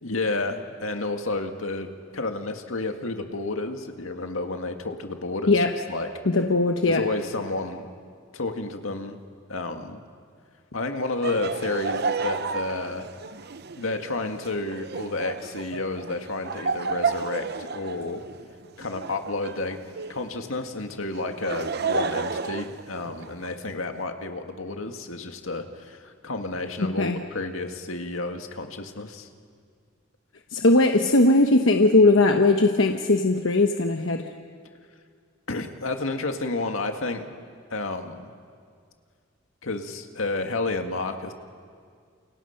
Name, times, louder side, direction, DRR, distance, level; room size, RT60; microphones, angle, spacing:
voice 1, 0.0-6.1 6.9-7.9 8.3-9.2 9.5-10.0 10.7-13.1 13.8-18.2 18.8-19.8 20.1-29.3 35.5-37.3 37.7-38.3 39.6-41.3, left 2 dB, 85° left, 5 dB, 2.0 m, -31 dB
voice 2, 6.2-7.0 26.8-27.2 30.5-34.3, left 2 dB, 65° left, 4 dB, 1.1 m, -19 dB
Laughter, 11.2-20.3 21.1-23.5, right 4 dB, 50° right, 0.8 m, -32 dB
30.0 x 28.5 x 5.9 m, 2.2 s
head